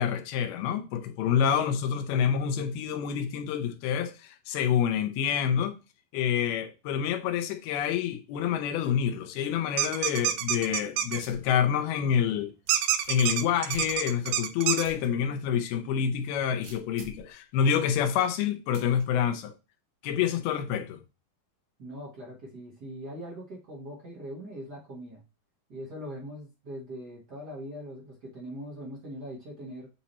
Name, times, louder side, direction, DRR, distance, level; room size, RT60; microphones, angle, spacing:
voice 1, 0.0-5.8 6.1-12.5 13.1-19.5 20.0-21.0, left 8 dB, 85° left, 2.7 m, -27 dB
sound 1, 9.8-11.2 12.7-14.8, right 11 dB, 85° right, 2.4 m, -27 dB
sound 2, 11.2-11.5 12.0-12.1 12.7-14.3 14.8-15.1 15.5-15.6 16.6-17.3 18.7-19.0, right 5 dB, 65° right, 2.7 m, -49 dB
voice 2, 21.8-25.2 25.7-29.9, equal, 50° right, 1.2 m, -41 dB
8.5 x 3.0 x 4.1 m
omnidirectional pair, 4.4 m